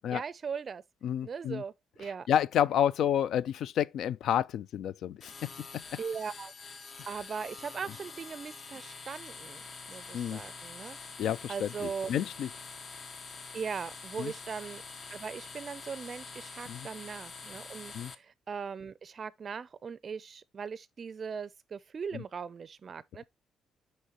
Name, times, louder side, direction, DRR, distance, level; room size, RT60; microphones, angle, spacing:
voice 1, 0.1-0.8 1.2-1.7 2.0-2.3 6.0-6.5 7.1-9.6 9.9-11.0 11.5-12.1 13.5-14.8 15.1-23.2, right 6 dB, 45° right, 0.4 m, -39 dB
voice 2, 1.0-1.6 2.3-5.8 10.1-10.4 11.2-12.5 14.2-14.3 16.7-16.9 17.9-18.1 22.1-22.2, left 10 dB, 75° left, 0.3 m, -30 dB
sound 1, 5.2-18.1, left 4 dB, 45° left, 0.7 m, -46 dB
6.4 x 5.5 x 2.9 m
cardioid pair, 90°, 0 cm